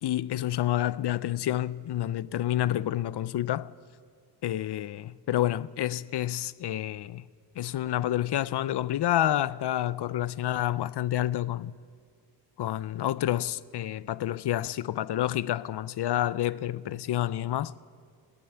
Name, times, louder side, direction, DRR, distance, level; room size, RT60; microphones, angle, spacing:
voice 1, 0.0-3.7 4.4-7.2 7.6-11.7 12.6-17.7, left 13 dB, 70° left, 0.5 m, -29 dB
23.0 x 17.5 x 7.0 m
wide cardioid pair, 160°, 43 cm